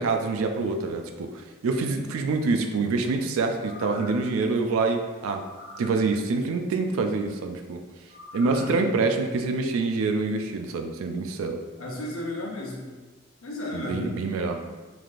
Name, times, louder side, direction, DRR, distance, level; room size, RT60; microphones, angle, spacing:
voice 1, 0.0-5.4 5.8-7.8 8.3-11.6 13.7-14.6, right 3 dB, 85° right, 5 dB, 0.3 m, -26 dB
sound 1, 3.5-4.3 5.3-6.0 8.1-8.8 9.2-9.3, left 1 dB, 50° left, 0.8 m, -42 dB
voice 2, 11.8-12.9 13.4-14.1, left 1 dB, 85° left, -2 dB, 0.7 m, -33 dB
3.2 x 2.4 x 2.5 m, 1.3 s
head